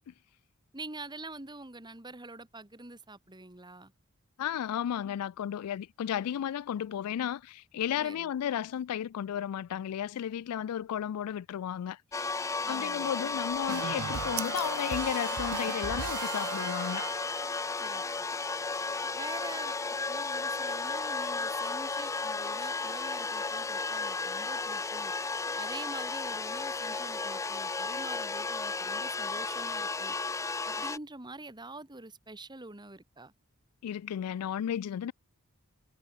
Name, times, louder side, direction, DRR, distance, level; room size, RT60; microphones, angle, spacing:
voice 1, 0.7-3.9 8.0-8.3 12.6-13.1 17.8-18.3 19.1-19.8 20.1-25.1 25.6-30.2 30.7-33.3, right 2 dB, 20° right, 1.9 m, -46 dB
voice 2, 4.4-17.3 33.8-35.1, left 9 dB, 85° left, 0.3 m, -34 dB
sound 1, 12.1-31.0, left 4 dB, 15° left, 0.4 m, -34 dB
sound 2, 13.2-16.0, right 15 dB, 70° right, 2.1 m, -46 dB
sound 3, 13.7-17.6, right 8 dB, 90° right, 0.5 m, -38 dB
head